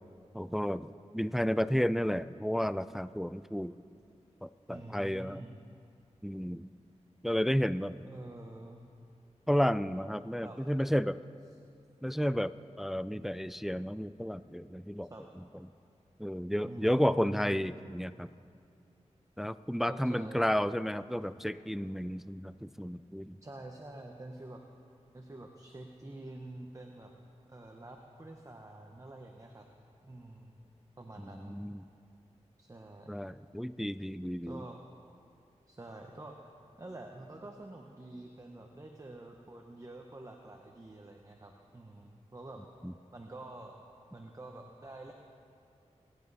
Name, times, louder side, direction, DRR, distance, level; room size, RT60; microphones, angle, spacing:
voice 1, 0.3-3.7 4.4-5.4 6.2-6.7 7.2-8.0 9.5-11.2 12.0-15.1 16.2-18.3 19.4-23.4 31.2-31.8 33.1-34.6 42.8-42.9, equal, 5° right, 15 dB, 0.3 m, -32 dB
voice 2, 4.7-5.6 8.0-8.9 10.4-10.6 15.1-15.2 16.6-17.6 19.9-20.5 23.4-24.6 25.1-27.1 27.5-29.6 30.0-30.6 31.0-31.5 32.6-33.1 34.4-34.8 35.7-36.5 36.8-42.6 43.1-43.7 44.1-45.1, right 2 dB, 30° right, 2 dB, 1.1 m, -47 dB
28.0 x 11.0 x 4.1 m, 2.5 s
wide cardioid pair, 85°, 12 cm